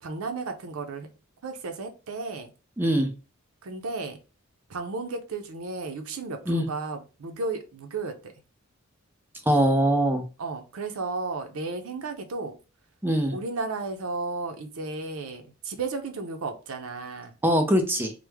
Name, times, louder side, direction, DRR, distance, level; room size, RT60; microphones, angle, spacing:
voice 1, 0.0-1.1 1.4-2.5 3.6-4.2 4.7-8.3 10.4-12.5 13.3-17.3, right 3 dB, 85° right, 0.6 m, -34 dB
voice 2, 2.8-3.1 6.5-6.6 9.5-10.2 13.0-13.3 17.4-18.1, equal, 10° right, 0.5 m, -22 dB
3.1 x 2.0 x 3.4 m
head